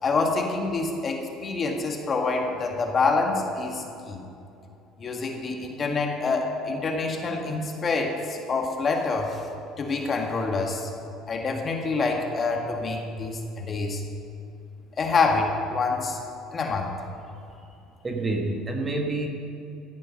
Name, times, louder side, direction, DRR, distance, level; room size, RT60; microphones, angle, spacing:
voice 1, 0.0-4.2 5.0-9.4 9.8-10.9 11.3-14.0 15.0-16.2 16.5-16.9, left 3 dB, 30° left, 2 dB, 1.7 m, -26 dB
voice 2, 18.0-19.3, right 2 dB, 20° right, 2 dB, 1.4 m, -27 dB
15.0 x 8.6 x 6.4 m, 2.7 s
cardioid pair, 130°, 0 cm